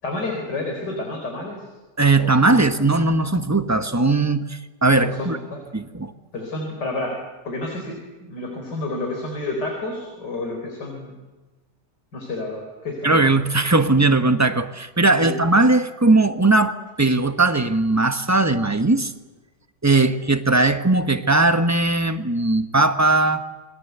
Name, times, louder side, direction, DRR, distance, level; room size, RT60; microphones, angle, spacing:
voice 1, 0.0-1.7 2.1-2.7 5.0-5.6 5.9-11.2 12.1-13.2 15.2-15.5 20.0-20.2, left 2 dB, 75° left, 2 dB, 5.0 m, -30 dB
voice 2, 2.0-5.4 5.7-6.1 13.0-19.1 19.8-23.4, right 2 dB, 10° right, 8 dB, 0.9 m, -19 dB
28.5 x 22.0 x 8.1 m, 1.2 s
omnidirectional pair, 1.8 m